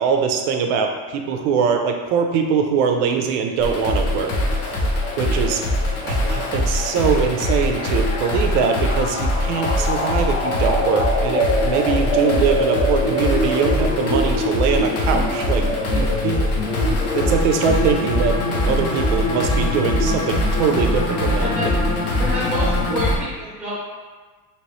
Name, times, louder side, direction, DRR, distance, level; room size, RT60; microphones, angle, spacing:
voice 1, 0.0-4.3 5.2-5.6 6.0-15.6 15.9-16.4 17.1-18.4 18.7-21.7, right 6 dB, 75° right, 4 dB, 0.6 m, -22 dB
sound 1, 3.6-23.2, left 1 dB, 40° left, 0.6 m, -21 dB
voice 2, 22.2-23.8, equal, 5° right, -8 dB, 0.8 m, -27 dB
3.0 x 2.9 x 3.1 m, 1.4 s
cardioid pair, 160°, 36 cm